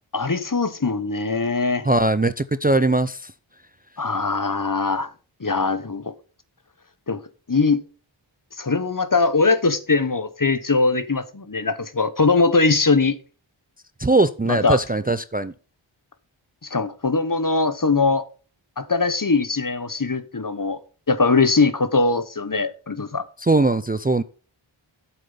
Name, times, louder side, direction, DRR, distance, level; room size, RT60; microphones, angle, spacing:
voice 1, 0.1-1.9 4.0-5.1 5.4-6.1 7.1-7.2 7.5-7.8 8.6-13.2 14.4-14.8 16.6-18.2 18.8-20.8 21.1-23.3, left 3 dB, 40° left, 1.1 m, -21 dB
voice 2, 1.8-3.3 14.0-15.5 23.4-24.2, right 2 dB, 20° right, 0.5 m, -20 dB
8.7 x 7.7 x 5.6 m
wide cardioid pair, 45°, 48 cm